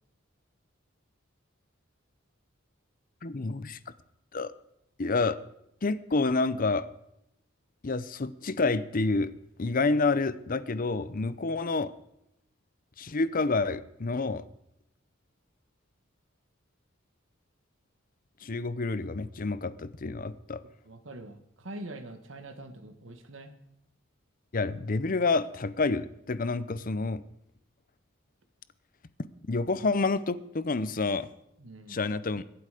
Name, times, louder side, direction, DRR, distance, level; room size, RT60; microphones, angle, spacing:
voice 1, 3.2-3.8 4.3-4.5 5.0-5.4 5.8-6.9 7.8-9.3 9.6-11.9 13.0-14.4 18.4-20.6 24.5-27.2 29.5-31.3 31.9-32.4, left 3 dB, 45° left, 15 dB, 0.7 m, -28 dB
voice 2, 20.8-23.5 31.6-32.0, right 1 dB, 75° right, 8 dB, 1.7 m, -44 dB
23.0 x 8.0 x 5.0 m, 0.80 s
head